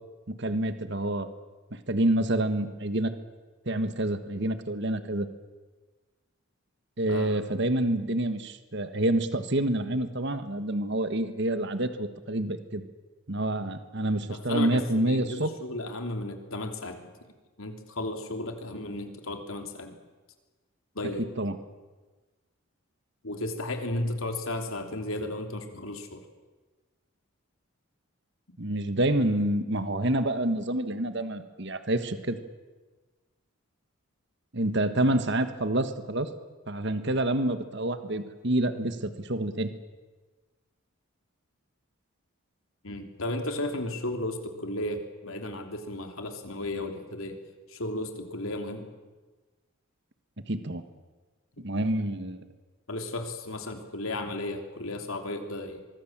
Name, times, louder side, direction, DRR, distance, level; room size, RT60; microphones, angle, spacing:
voice 1, 0.3-1.3 1.9-3.1 3.6-5.3 7.0-12.8 13.3-15.5 21.2-21.6 28.6-32.4 34.5-36.3 36.7-39.7 50.5-50.8 51.6-52.4, right 1 dB, 55° right, 10 dB, 1.5 m, -27 dB
voice 2, 14.3-17.0 17.6-19.9 20.9-21.2 23.2-26.2 42.8-47.4 47.7-48.9 52.9-55.8, left 1 dB, 75° left, 5 dB, 3.2 m, -34 dB
24.0 x 23.5 x 7.4 m, 1.3 s
head